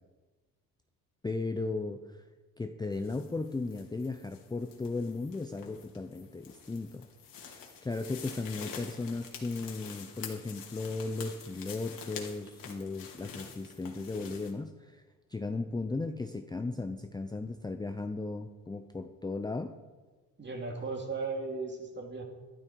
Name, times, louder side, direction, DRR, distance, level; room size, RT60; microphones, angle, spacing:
voice 1, 1.2-2.2 2.6-7.1 7.5-15.0 15.3-19.7, left 3 dB, 10° left, 7 dB, 0.6 m, -36 dB
sound 1, 2.9-14.5, left 6 dB, 65° left, 2.5 m, -47 dB
voice 2, 20.4-22.2, right 3 dB, 30° right, 2 dB, 2.5 m, -36 dB
12.5 x 12.5 x 4.6 m, 1.3 s
cardioid pair, 100°, 36 cm